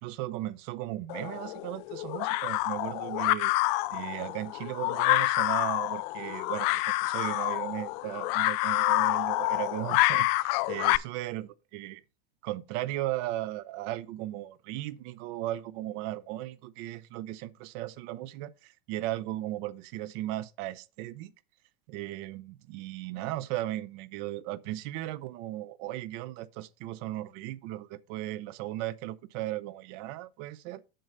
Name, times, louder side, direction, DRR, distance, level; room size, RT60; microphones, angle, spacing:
voice 1, 0.0-3.5 3.9-12.0 12.4-21.3 21.9-30.8, right 15 dB, 50° right, 0.7 m, -36 dB
sound 1, 1.1-11.0, left 20 dB, 45° left, 0.4 m, -28 dB
7.7 x 6.5 x 4.0 m
supercardioid pair, 135°, 31 cm